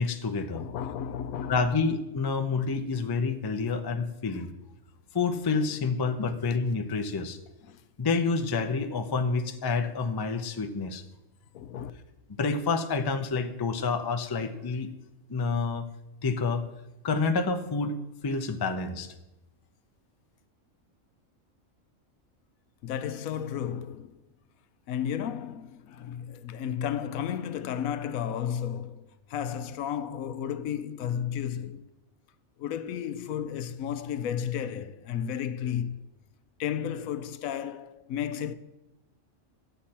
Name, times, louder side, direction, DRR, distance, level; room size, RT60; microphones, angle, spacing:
voice 1, 0.0-0.6 1.5-4.5 5.1-7.4 8.0-11.0 12.4-14.9 15.3-15.9 16.2-16.7 17.0-18.0 18.2-19.1, left 4 dB, 30° left, 0.4 m, -28 dB
voice 2, 0.5-1.7 3.7-3.8 7.7-7.8 11.5-11.9 22.8-24.2 24.9-31.8 32.6-36.1 36.6-38.5, left 9 dB, 85° left, 1.0 m, -33 dB
11.5 x 8.0 x 4.3 m
omnidirectional pair, 1.4 m